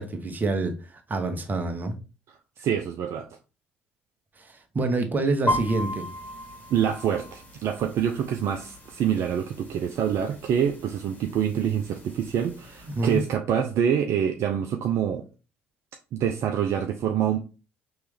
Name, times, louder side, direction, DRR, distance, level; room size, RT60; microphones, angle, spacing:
voice 1, 0.0-1.9 4.4-6.1 12.8-13.2, right 2 dB, 30° right, 1.1 m, -27 dB
voice 2, 2.6-3.3 6.7-15.2 16.1-17.4, right 8 dB, 55° right, 0.5 m, -26 dB
sound 1, 5.5-13.3, equal, 25° left, 1.8 m, -36 dB
4.5 x 3.1 x 3.4 m
hypercardioid pair, 55°, 6 cm